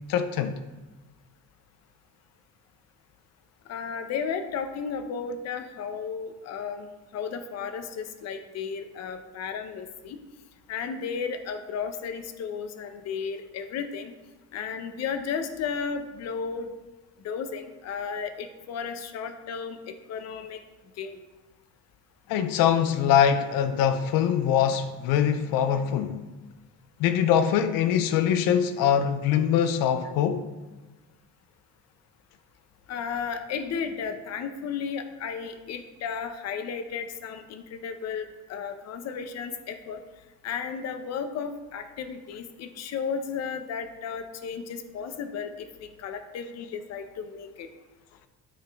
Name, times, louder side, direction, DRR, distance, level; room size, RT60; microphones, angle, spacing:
voice 1, 0.1-0.5 22.3-26.2 27.0-30.5, left 9 dB, 85° left, 0.6 m, -23 dB
voice 2, 3.7-10.2 10.7-14.1 14.5-16.7 17.2-20.6 21.0-21.2 32.9-40.0 40.4-47.7, left 6 dB, 50° left, 0.7 m, -34 dB
12.0 x 4.8 x 3.5 m
cardioid pair, 160°, 33 cm